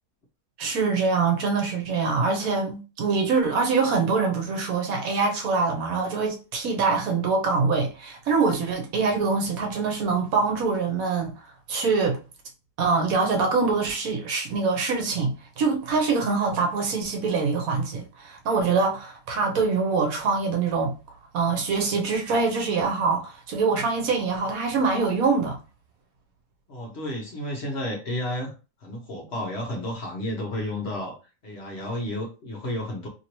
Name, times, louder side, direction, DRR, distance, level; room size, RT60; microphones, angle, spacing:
voice 1, 0.6-11.3 11.7-12.2 12.8-20.9 21.3-25.6, right 4 dB, 65° right, 1.1 m, -24 dB
voice 2, 26.7-28.5 28.8-31.1 31.4-33.1, left 1 dB, 50° left, 0.9 m, -31 dB
2.9 x 2.8 x 2.8 m
omnidirectional pair, 1.7 m